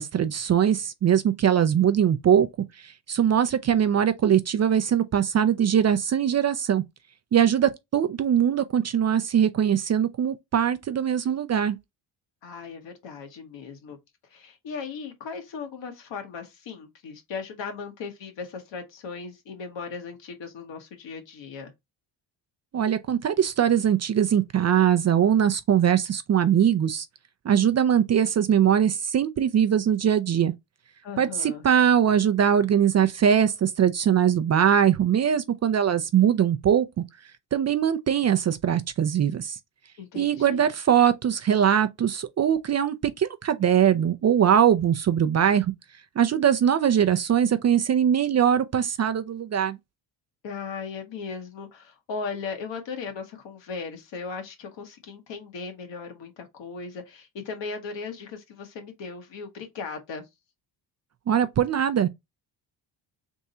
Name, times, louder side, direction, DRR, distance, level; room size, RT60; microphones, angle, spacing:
voice 1, 0.0-2.5 2.8-6.8 7.3-11.8 22.7-27.1 27.4-30.5 31.2-37.0 37.5-39.6 40.2-45.7 46.2-49.8 61.3-62.1, right 9 dB, 35° right, 0.4 m, -21 dB
voice 2, 12.4-14.0 14.3-21.7 31.0-31.6 40.0-40.6 50.4-60.2, left 5 dB, 65° left, 1.5 m, -37 dB
3.6 x 2.7 x 4.2 m
cardioid pair, 90°, 47 cm